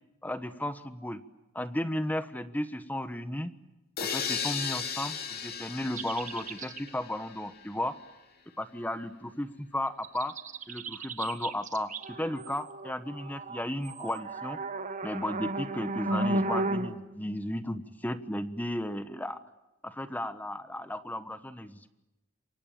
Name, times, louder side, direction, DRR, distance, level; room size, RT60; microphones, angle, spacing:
voice 1, 0.2-1.2 1.5-3.5 4.0-8.0 8.6-10.4 10.7-14.6 15.0-19.4 19.8-22.0, left 1 dB, 10° left, 11 dB, 1.2 m, -34 dB
sound 1, 4.0-7.7, left 6 dB, 50° left, 3.5 m, -36 dB
sound 2, 6.0-6.9 10.0-16.9, right 2 dB, 40° right, 1.7 m, -34 dB
28.0 x 24.5 x 8.7 m, 0.96 s
head